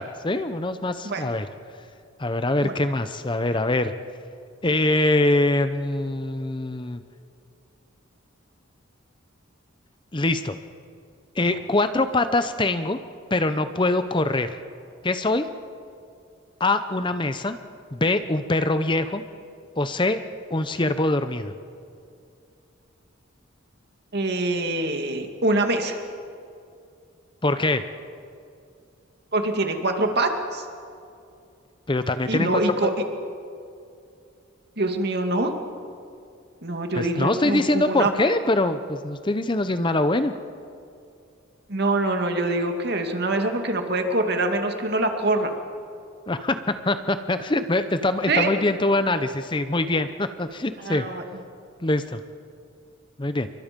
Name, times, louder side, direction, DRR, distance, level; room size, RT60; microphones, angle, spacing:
voice 1, 0.0-1.5 2.2-3.9 4.6-7.0 10.1-10.6 11.4-13.0 13.3-14.5 15.0-15.5 16.6-17.6 17.9-19.2 19.8-20.2 20.5-21.5 27.4-27.8 31.9-32.6 36.9-40.3 46.3-46.6 46.8-51.1 51.8-52.2 53.2-53.5, left 2 dB, 25° left, 10 dB, 0.7 m, -23 dB
voice 2, 24.1-26.0 29.3-30.6 32.3-32.9 34.8-35.5 36.6-38.1 41.7-45.5 48.3-48.5 50.8-51.2, right 2 dB, 55° right, 5 dB, 2.2 m, -24 dB
28.0 x 24.0 x 5.3 m, 2.5 s
head